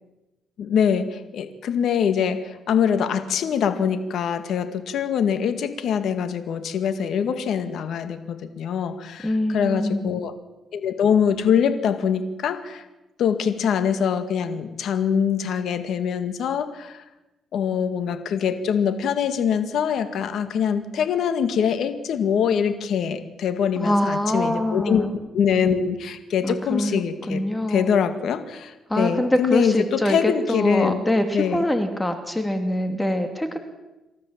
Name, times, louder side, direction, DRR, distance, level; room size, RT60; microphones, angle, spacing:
voice 1, 0.6-10.3 10.7-12.9 13.2-17.0 17.5-31.0 31.3-31.6, left 7 dB, 70° left, 9 dB, 2.0 m, -24 dB
voice 2, 9.2-10.1 23.8-25.1 26.4-27.9 28.9-33.6, left 1 dB, 10° left, 7 dB, 2.5 m, -24 dB
28.5 x 13.5 x 7.5 m, 1.0 s
cardioid pair, 90°, 0 cm